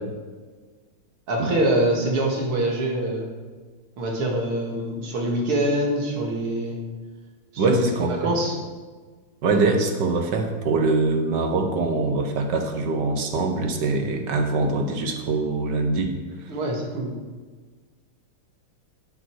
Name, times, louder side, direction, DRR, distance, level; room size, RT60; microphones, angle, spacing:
voice 1, 1.3-3.3 4.0-6.8 7.5-7.8 8.1-8.5 16.5-17.1, right 1 dB, 85° right, 0 dB, 2.9 m, -24 dB
voice 2, 7.6-8.3 9.4-16.2, right 3 dB, 60° right, 5 dB, 1.8 m, -23 dB
12.0 x 8.1 x 4.7 m, 1.4 s
omnidirectional pair, 2.3 m